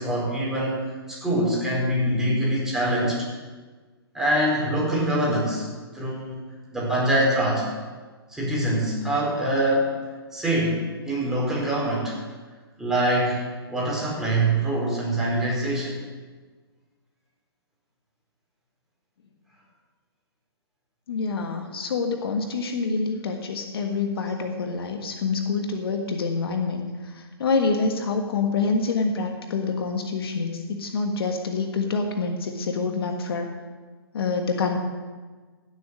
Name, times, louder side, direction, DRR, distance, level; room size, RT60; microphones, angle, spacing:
voice 1, 0.0-3.3 4.1-5.7 5.9-6.4 6.7-7.7 8.3-9.9 10.3-12.1 12.8-13.4 13.7-16.0, right 1 dB, 5° right, -5 dB, 4.7 m, -24 dB
voice 2, 21.1-33.5 34.1-34.8, left 4 dB, 65° left, 4 dB, 1.5 m, -26 dB
16.5 x 7.3 x 6.3 m, 1.4 s
hypercardioid pair, 130°, 14 cm